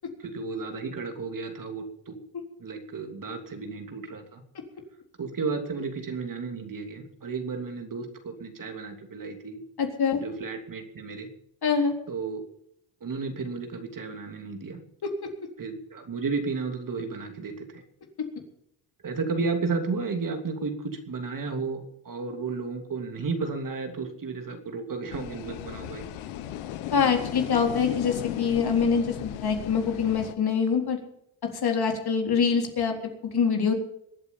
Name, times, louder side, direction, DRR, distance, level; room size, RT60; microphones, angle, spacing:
voice 1, 0.2-2.2 2.6-4.4 5.2-9.6 10.2-11.3 12.1-12.4 13.0-14.8 15.6-17.8 19.0-26.0, right 4 dB, 40° right, 5 dB, 3.0 m, -33 dB
voice 2, 9.8-10.2 11.6-11.9 26.9-31.0 31.6-32.9 33.3-33.7, left 6 dB, 50° left, 3 dB, 3.9 m, -24 dB
sound 1, 25.1-30.3, left 11 dB, 90° left, 1.4 m, -36 dB
22.0 x 8.2 x 7.1 m, 0.72 s
cardioid pair, 85°, 47 cm